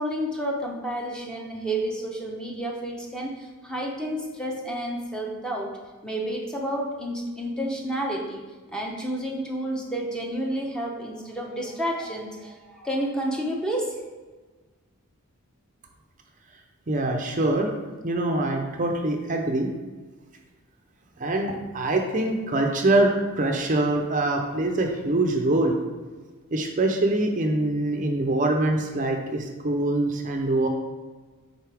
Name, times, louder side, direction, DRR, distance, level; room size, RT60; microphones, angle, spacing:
voice 1, 0.0-5.7 6.0-8.4 8.7-14.0, right 1 dB, 5° left, -2 dB, 0.8 m, -30 dB
voice 2, 16.9-17.7 18.0-19.7 21.2-23.1 23.4-25.7 26.5-30.7, right 2 dB, 35° right, 3 dB, 0.6 m, -24 dB
9.3 x 4.1 x 3.4 m, 1.3 s
head